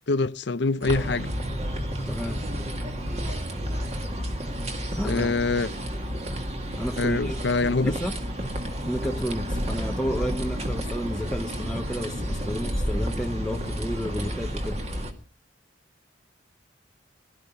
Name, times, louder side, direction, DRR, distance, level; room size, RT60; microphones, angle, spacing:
voice 1, 0.1-1.3 5.0-5.7 7.0-7.9, left 3 dB, 60° left, 0.6 m, -25 dB
sound 1, 0.8-15.1, equal, 35° right, 2.0 m, -31 dB
voice 2, 2.1-2.4 5.0-5.4 6.8-7.4 7.8-8.2 8.8-14.8, equal, 5° left, 0.7 m, -31 dB
17.5 x 12.0 x 5.6 m
head